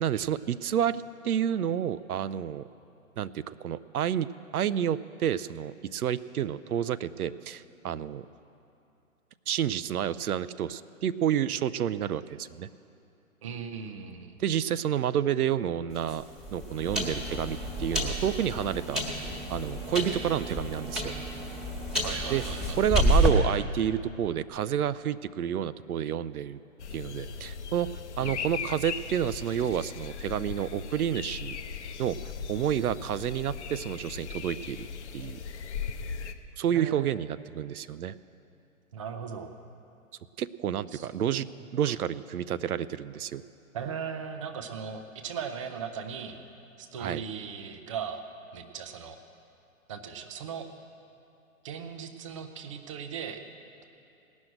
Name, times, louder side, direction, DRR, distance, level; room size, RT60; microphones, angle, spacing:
voice 1, 0.0-2.7 3.2-8.2 9.5-12.7 14.4-16.2 16.5-21.1 22.3-22.4 22.8-26.6 26.9-27.9 28.2-31.6 32.0-34.9 35.1-35.4 36.6-38.1 40.4-41.5 41.7-43.4 47.0-47.2, right 10 dB, 80° right, 15 dB, 0.6 m, -29 dB
voice 2, 13.4-14.4 22.0-22.8 28.2-28.4 36.7-37.1 38.9-39.5 40.9-41.1 41.3-41.9 43.7-46.4 46.8-48.2 48.5-49.2 49.9-50.7 51.6-53.4, right 7 dB, 25° right, 6 dB, 0.5 m, -38 dB
sound 1, 15.9-23.3, equal, ahead, 1.4 m, -29 dB
sound 2, 26.8-36.3, left 6 dB, 50° left, 0.8 m, -38 dB
17.5 x 6.3 x 8.9 m, 2.7 s
hypercardioid pair, 140°, 43 cm